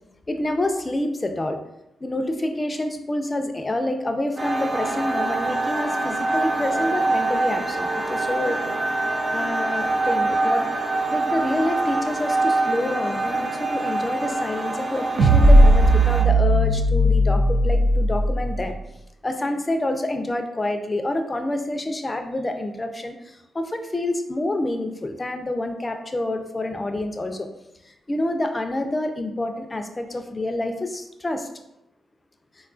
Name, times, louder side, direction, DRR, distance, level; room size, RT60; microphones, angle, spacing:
voice 1, 0.3-1.6 2.0-8.6 9.3-10.6 11.1-18.8 19.2-27.5 27.9-31.5, left 1 dB, 30° left, 5 dB, 0.4 m, -27 dB
sound 1, 4.4-16.2, right 2 dB, 35° right, 0.7 m, -25 dB
sound 2, 15.2-18.6, right 1 dB, 80° right, 0.3 m, -16 dB
3.6 x 2.3 x 2.4 m, 0.85 s
supercardioid pair, 50°, 0 cm